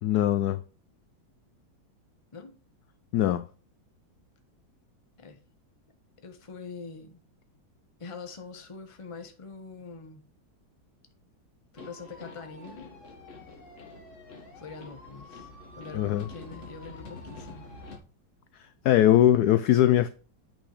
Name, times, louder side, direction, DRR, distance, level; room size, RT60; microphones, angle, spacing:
voice 1, 0.0-0.6 3.1-3.4 15.9-16.3 18.8-20.1, left 12 dB, 80° left, 0.8 m, -21 dB
voice 2, 6.2-7.2 8.0-10.2 11.7-12.9 14.5-17.7, left 4 dB, 25° left, 0.7 m, -44 dB
sound 1, 11.8-18.0, left 3 dB, 40° left, 1.7 m, -46 dB
8.3 x 6.1 x 3.2 m
omnidirectional pair, 2.1 m